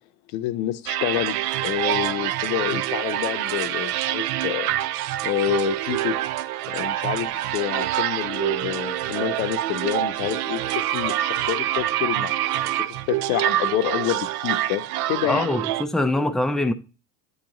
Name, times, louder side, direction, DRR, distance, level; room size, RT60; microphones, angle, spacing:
voice 1, 0.3-1.4 1.6-4.7 5.2-6.2 6.7-12.3 12.9-15.5, left 14 dB, 70° left, 0.8 m, -28 dB
sound 1, 0.9-15.8, right 13 dB, 75° right, 0.5 m, -26 dB
voice 2, 15.2-16.7, left 1 dB, ahead, 0.3 m, -23 dB
8.4 x 3.0 x 3.8 m
supercardioid pair, 90°, 44 cm